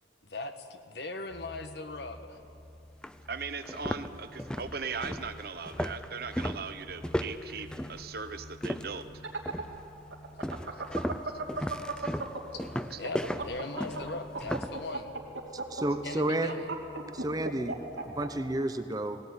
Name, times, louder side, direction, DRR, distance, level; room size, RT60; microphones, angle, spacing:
voice 1, 0.2-2.4 12.5-12.7 13.0-15.1 16.0-16.7, left 2 dB, 60° left, 7 dB, 1.4 m, -39 dB
sound 1, 1.3-18.6, left 1 dB, 80° left, 2.4 m, -51 dB
sound 2, 2.4-2.5 3.0-3.2 3.6-9.1 9.5-9.9 10.4-14.8, equal, 5° left, 0.5 m, -35 dB
voice 2, 3.3-9.0 12.9-13.0, right 5 dB, 50° right, 10 dB, 1.0 m, -39 dB
sound 3, 9.0-12.6 12.9-18.3, right 3 dB, 80° right, 2.9 m, -35 dB
voice 3, 15.5-16.5 17.1-19.2, right 1 dB, 20° right, 9 dB, 0.8 m, -31 dB
19.0 x 18.0 x 9.6 m, 2.6 s
head